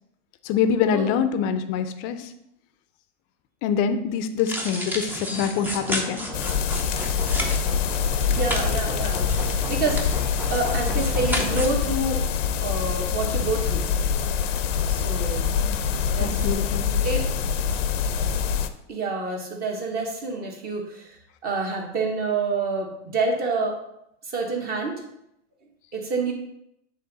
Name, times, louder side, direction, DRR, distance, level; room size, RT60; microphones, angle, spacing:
voice 1, 0.4-2.3 3.6-6.3 15.6-15.8 16.2-16.9, left 7 dB, 35° left, 10 dB, 0.5 m, -25 dB
sound 1, 4.4-11.7, equal, 5° right, 0.6 m, -32 dB
sound 2, 6.3-18.7, left 7 dB, 85° left, 0.7 m, -25 dB
voice 2, 8.3-9.2 9.7-10.1 10.5-12.2 12.6-13.9 14.9-15.5 16.1-16.4 17.0-17.3 18.9-23.8 24.2-25.0 25.9-26.3, right 3 dB, 25° right, 1 dB, 1.3 m, -27 dB
7.9 x 3.5 x 4.0 m, 0.80 s
hypercardioid pair, 135°, 36 cm